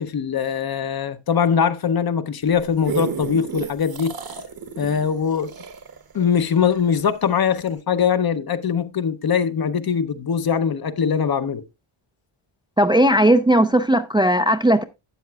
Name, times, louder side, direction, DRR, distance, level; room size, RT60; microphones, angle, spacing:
voice 1, 0.0-4.1 4.8-5.5 6.1-11.6, left 7 dB, 45° left, 0.8 m, -22 dB
sound 1, 2.5-7.2 7.7-7.8, right 6 dB, 45° right, 1.0 m, -32 dB
voice 2, 12.8-14.8, right 1 dB, 10° right, 0.4 m, -17 dB
12.5 x 8.3 x 2.3 m
wide cardioid pair, 120°, 50 cm